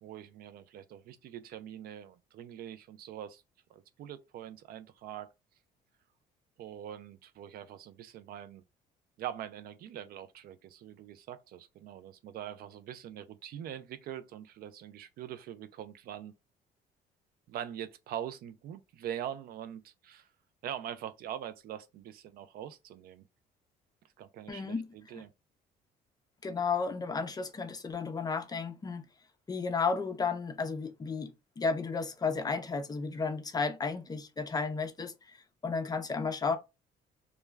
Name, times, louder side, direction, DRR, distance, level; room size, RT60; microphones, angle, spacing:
voice 1, 0.0-3.4 3.7-5.3 6.6-8.6 9.2-16.3 17.5-20.3 20.6-23.2 24.2-25.3, right 10 dB, 60° right, 0.4 m, -43 dB
voice 2, 24.5-25.2 26.4-29.1 29.5-36.6, left 4 dB, 25° left, 0.5 m, -33 dB
2.2 x 2.2 x 3.2 m
cardioid pair, 110°, 17 cm